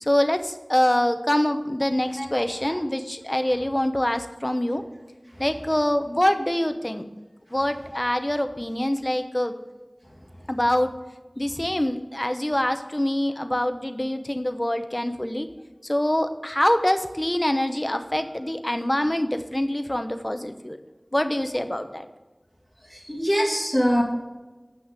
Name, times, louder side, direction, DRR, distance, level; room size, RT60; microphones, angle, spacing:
voice 1, 0.0-4.8 5.4-7.0 7.5-9.6 10.5-10.9 11.4-15.5 15.8-20.8 21.1-22.1, left 1 dB, 30° left, 8 dB, 0.8 m, -25 dB
voice 2, 22.9-24.0, equal, ahead, -3 dB, 2.1 m, -24 dB
7.8 x 6.2 x 6.5 m, 1.2 s
wide cardioid pair, 40°, 0 cm